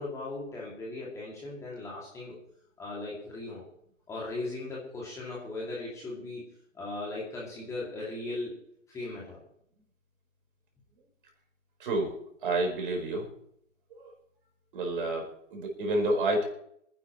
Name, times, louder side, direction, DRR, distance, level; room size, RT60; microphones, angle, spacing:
voice 1, 0.0-2.4 2.8-3.6 4.1-6.5 6.7-8.5 8.9-9.4, left 2 dB, 10° left, -5 dB, 2.3 m, -38 dB
voice 2, 11.8-12.1 12.4-13.3 14.7-16.5, right 2 dB, 40° right, 1 dB, 4.4 m, -29 dB
26.5 x 10.5 x 3.0 m, 0.70 s
figure-of-eight pair, 140°, 39 cm